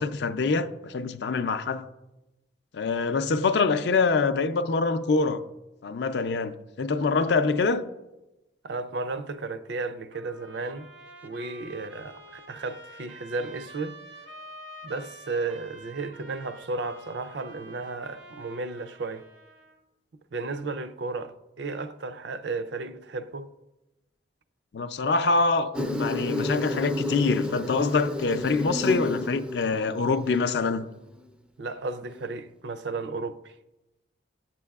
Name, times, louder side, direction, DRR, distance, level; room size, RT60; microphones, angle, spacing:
voice 1, 0.0-1.9 2.7-5.4 5.8-7.9 24.7-30.9, left 4 dB, 65° left, 0.4 m, -25 dB
voice 2, 8.6-10.9 11.2-14.0 14.8-19.3 20.3-23.5 31.6-33.5, right 3 dB, 70° right, 0.4 m, -34 dB
Trumpet, 10.1-19.8, right 1 dB, 90° right, 1.1 m, -48 dB
Insect, 25.7-30.7, left 1 dB, 5° right, 0.3 m, -31 dB
11.5 x 7.4 x 2.3 m
head